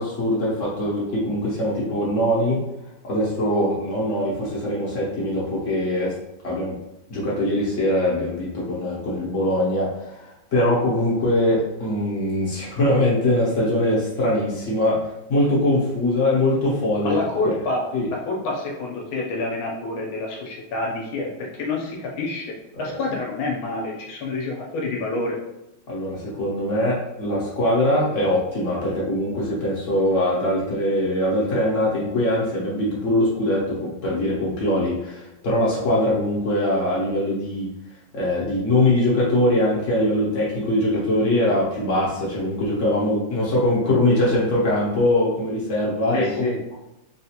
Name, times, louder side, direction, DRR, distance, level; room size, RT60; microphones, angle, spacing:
voice 1, 0.0-2.6 3.0-6.1 6.4-6.7 7.1-15.0 15.3-17.2 17.9-18.1 22.8-23.0 25.9-37.7 38.1-46.7, left 1 dB, 55° left, -6 dB, 0.9 m, -22 dB
voice 2, 17.0-22.5 22.8-25.4 46.1-46.6, left 2 dB, 75° left, -1 dB, 1.4 m, -27 dB
3.9 x 2.4 x 2.8 m, 0.88 s
omnidirectional pair, 2.4 m